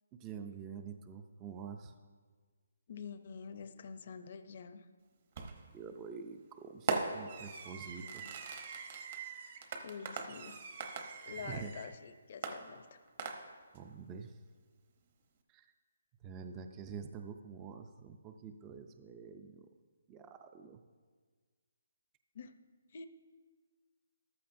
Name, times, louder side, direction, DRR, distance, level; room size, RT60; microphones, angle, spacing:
voice 1, 0.1-1.9 5.7-8.2 11.3-11.7 13.7-14.3 15.5-15.7 16.2-19.7 20.1-20.8, right 6 dB, 15° right, 7 dB, 0.3 m, -47 dB
voice 2, 2.9-4.9 7.8-8.3 9.8-10.6 11.2-13.0 22.3-22.5 22.9-23.1, left 6 dB, 40° left, 10 dB, 0.5 m, -47 dB
Fireworks, 5.4-5.8 6.9-11.9 12.4-13.8, right 5 dB, 30° right, 0.8 m, -41 dB
14.0 x 12.0 x 2.6 m, 1.5 s
hypercardioid pair, 175°, 0 cm